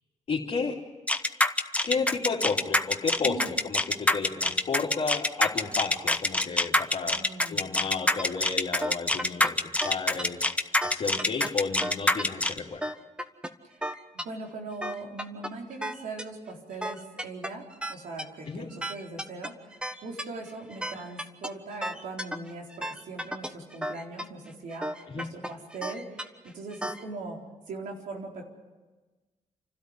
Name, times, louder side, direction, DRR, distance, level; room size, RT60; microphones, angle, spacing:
voice 1, 0.3-0.8 1.8-7.2 7.5-9.6 9.8-10.5 10.8-12.8 18.5-18.7 25.1-25.3, left 5 dB, 50° left, -4 dB, 3.0 m, -32 dB
sound 1, 1.1-12.6, left 2 dB, 10° left, 1.1 m, -25 dB
voice 2, 7.1-7.7 14.2-27.4 27.7-28.5, right 3 dB, 85° right, 1 dB, 4.1 m, -40 dB
sound 2, 8.2-8.3 8.8-9.5 9.8-10.2 10.8-11.5 11.8-12.2 12.8-13.5 13.8-14.2 14.7-16.2 16.7-27.0, equal, 5° right, 1.3 m, -34 dB
29.5 x 12.5 x 9.8 m, 1.3 s
cardioid pair, 85°, 13 cm